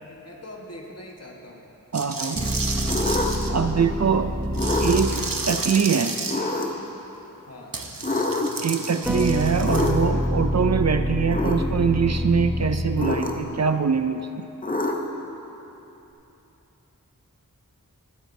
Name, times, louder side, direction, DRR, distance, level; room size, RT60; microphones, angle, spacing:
voice 1, 0.1-1.7 2.0-2.7 7.5-7.8, left 1 dB, 45° left, 0 dB, 1.4 m, -43 dB
voice 2, 1.9-2.5 3.5-4.4 4.8-5.2 5.5-6.2 8.6-14.5, right 6 dB, 50° right, 9 dB, 0.4 m, -23 dB
sound 1, 1.9-3.5 4.5-6.4 7.7-9.9, right 4 dB, 75° right, 0.9 m, -31 dB
sound 2, 2.3-5.5 9.0-13.6, left 1 dB, 5° right, 0.9 m, -27 dB
sound 3, 2.9-3.6 4.6-5.2 6.3-6.9 8.0-8.7 9.6-10.3 11.3-11.7 13.0-13.6 14.6-15.3, left 2 dB, 25° left, 0.8 m, -26 dB
23.5 x 7.9 x 2.7 m, 3.0 s
wide cardioid pair, 60°, 34 cm